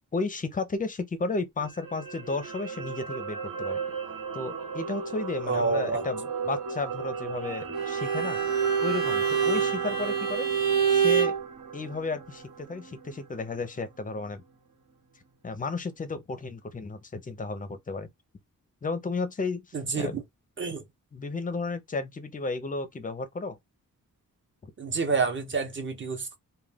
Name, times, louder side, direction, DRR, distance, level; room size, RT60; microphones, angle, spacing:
voice 1, 0.0-3.8 4.3-8.4 8.8-10.5 10.9-11.3 11.7-14.4 15.4-18.1 18.8-20.1 21.1-23.6 24.6-24.7, left 3 dB, 25° left, 0.5 m, -33 dB
sound 1, 1.6-13.9 14.3-14.4, right 5 dB, 70° right, 1.1 m, -36 dB
voice 2, 5.5-6.0 19.7-20.2 20.6-20.8 24.8-26.4, right 4 dB, 35° right, 0.7 m, -28 dB
Bowed string instrument, 7.7-11.4, right 7 dB, 90° right, 0.7 m, -26 dB
2.3 x 2.2 x 3.2 m
wide cardioid pair, 150°, 34 cm